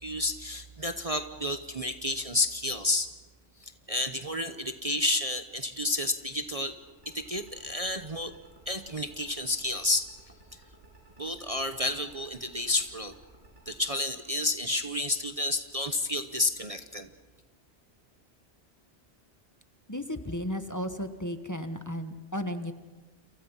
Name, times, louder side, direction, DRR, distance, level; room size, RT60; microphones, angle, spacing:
voice 1, 0.0-3.1 3.9-6.7 7.1-8.3 8.7-10.1 11.2-13.1 13.7-17.1, left 2 dB, 35° right, 8 dB, 1.0 m, -30 dB
sound 1, 6.8-13.7, right 1 dB, 85° right, 7.1 m, -56 dB
voice 2, 19.9-22.7, equal, 15° left, 8 dB, 1.3 m, -34 dB
29.5 x 28.5 x 5.6 m, 1.2 s
omnidirectional pair, 1.2 m